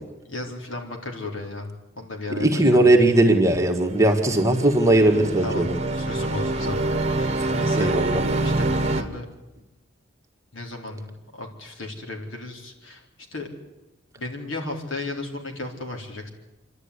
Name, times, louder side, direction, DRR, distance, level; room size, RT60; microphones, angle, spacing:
voice 1, 0.3-3.2 5.4-7.9 8.4-9.3 10.5-13.0 13.3-13.5 14.2-16.3, left 2 dB, 75° left, 3 dB, 3.9 m, -35 dB
voice 2, 2.3-5.8 7.7-8.2, right 1 dB, 15° right, 3 dB, 1.7 m, -19 dB
sound 1, 4.0-9.0, right 2 dB, 35° right, 1.4 m, -26 dB
27.5 x 11.5 x 9.8 m, 1.0 s
head